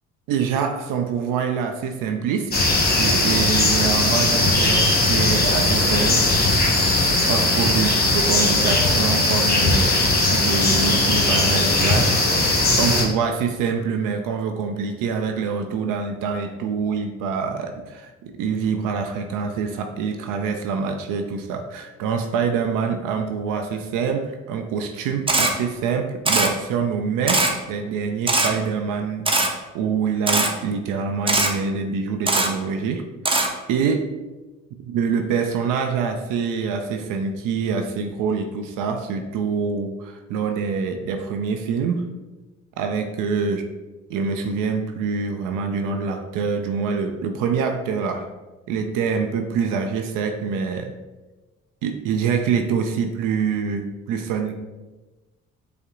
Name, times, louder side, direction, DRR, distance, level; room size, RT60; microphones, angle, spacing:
voice 1, 0.3-6.3 7.3-33.1 33.7-34.1 34.9-42.1 42.8-43.6 44.1-48.3 48.7-50.9 51.8-54.6, right 6 dB, 70° right, 5 dB, 0.5 m, -25 dB
sound 1, 2.5-13.0, left 2 dB, 30° left, 1.2 m, -19 dB
Camera, 25.3-25.5 26.3-26.5 27.3-27.5 28.3-28.5 29.3-29.5 30.3-30.5 31.3-31.5 32.3-32.5 33.3-33.5, right 2 dB, 15° right, 0.7 m, -19 dB
5.3 x 2.1 x 3.7 m, 1.2 s
hypercardioid pair, 55°, 33 cm